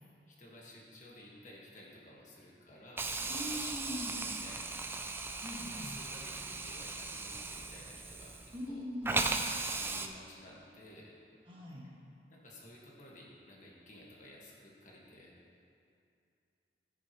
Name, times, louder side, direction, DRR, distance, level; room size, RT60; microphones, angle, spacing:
voice 1, 0.3-5.3 5.6-8.8 9.5-11.2 12.3-15.3, left 1 dB, 45° left, -4 dB, 1.6 m, -54 dB
Hiss, 3.0-8.7 9.0-10.1, right 3 dB, 15° right, 0.3 m, -37 dB
voice 2, 3.3-4.2 5.4-6.0 8.5-9.3 11.5-11.9, equal, 30° right, -5 dB, 1.9 m, -42 dB
15.0 x 7.0 x 3.0 m, 2.5 s
head